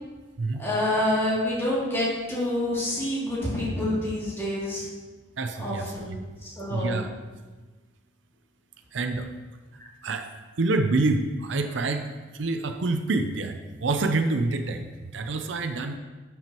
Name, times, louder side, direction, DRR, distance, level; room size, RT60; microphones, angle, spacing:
voice 1, 0.6-4.9 5.6-6.1 6.4-7.0, left 1 dB, 15° left, -7 dB, 2.6 m, -27 dB
voice 2, 5.4-6.2 6.7-7.1 8.9-9.3 10.0-10.3 10.6-14.9 15.1-16.0, right 3 dB, 70° right, 7 dB, 0.6 m, -27 dB
11.5 x 6.1 x 3.0 m, 1.3 s
head